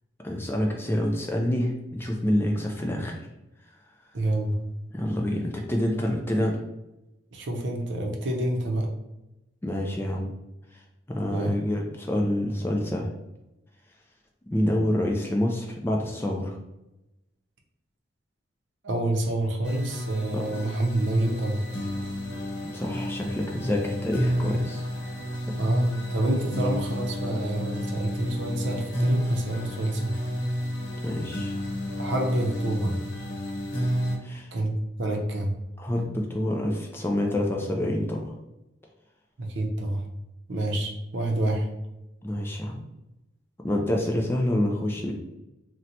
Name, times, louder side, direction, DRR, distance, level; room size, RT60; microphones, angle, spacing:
voice 1, 0.2-3.2 4.9-6.6 9.6-10.3 10.7-10.8 11.1-13.1 14.5-16.6 20.3-20.4 22.7-24.8 25.5-25.6 31.0-31.5 34.2-34.5 35.8-38.3 42.2-42.8 43.6-45.2, left 1 dB, 10° left, 0 dB, 0.3 m, -27 dB
voice 2, 4.1-4.6 7.3-8.9 11.3-11.5 18.8-21.7 25.6-30.1 32.0-33.0 34.5-35.5 39.4-40.0 40.5-41.7, right 1 dB, 70° right, 1 dB, 0.6 m, -28 dB
sound 1, 19.6-34.2, equal, 70° left, 0.8 m, -31 dB
2.8 x 2.1 x 3.9 m, 0.93 s
head